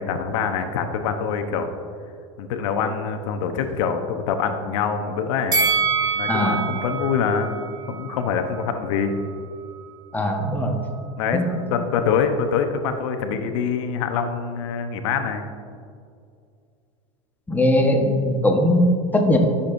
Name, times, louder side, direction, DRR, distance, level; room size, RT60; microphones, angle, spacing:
voice 1, 0.0-1.7 2.4-5.6 6.2-7.5 7.9-9.2 11.2-15.4, left 6 dB, 75° left, 7 dB, 0.9 m, -25 dB
Bell, 5.5-8.7 9.1-9.2, right 5 dB, 20° right, 1.4 m, -25 dB
voice 2, 6.3-6.6 10.1-10.8 11.3-11.5 17.5-19.4, left 1 dB, 10° left, 2 dB, 1.1 m, -20 dB
13.0 x 6.9 x 2.6 m, 2.3 s
supercardioid pair, 115°, 16 cm